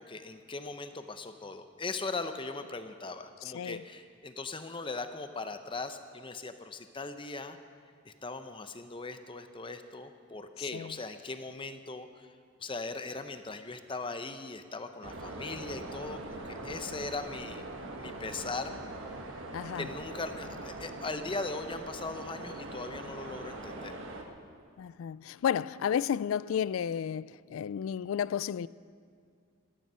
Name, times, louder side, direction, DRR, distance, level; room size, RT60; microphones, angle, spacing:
voice 1, 0.0-7.6 8.0-12.3 12.6-17.7 18.0-18.8 19.7-24.0, left 3 dB, 25° left, 0.7 m, -39 dB
sound 1, 15.0-24.2, right 2 dB, 65° right, 1.4 m, -42 dB
voice 2, 19.5-19.9 24.8-28.7, left 8 dB, 70° left, 0.3 m, -32 dB
16.5 x 12.5 x 5.6 m
head